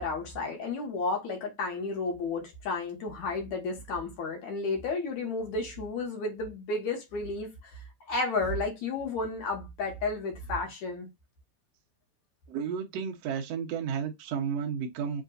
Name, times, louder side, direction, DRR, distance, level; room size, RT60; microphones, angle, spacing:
voice 1, 0.0-11.1, left 3 dB, 60° left, 2.3 m, -32 dB
voice 2, 12.5-15.2, right 7 dB, 75° right, 1.5 m, -32 dB
7.6 x 2.7 x 2.4 m
omnidirectional pair, 4.5 m